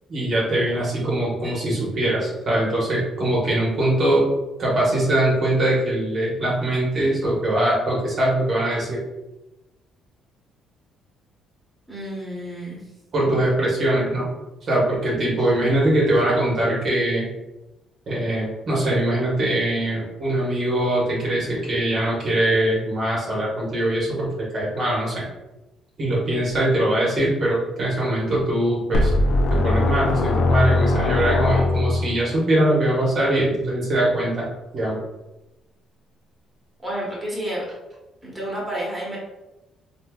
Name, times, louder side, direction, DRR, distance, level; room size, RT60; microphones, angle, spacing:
voice 1, 0.1-4.3 4.6-9.0 13.1-14.3 14.6-17.2 18.1-25.2 26.0-29.1 29.5-34.5 34.7-35.0, right 1 dB, 50° right, -5 dB, 1.0 m, -22 dB
voice 2, 11.9-12.8 36.8-37.6 38.2-39.2, right 1 dB, 5° right, -6 dB, 1.2 m, -30 dB
sound 1, 28.9-32.2, left 2 dB, 65° left, 0.4 m, -20 dB
3.3 x 2.7 x 2.3 m, 1.0 s
cardioid pair, 105°, 0 cm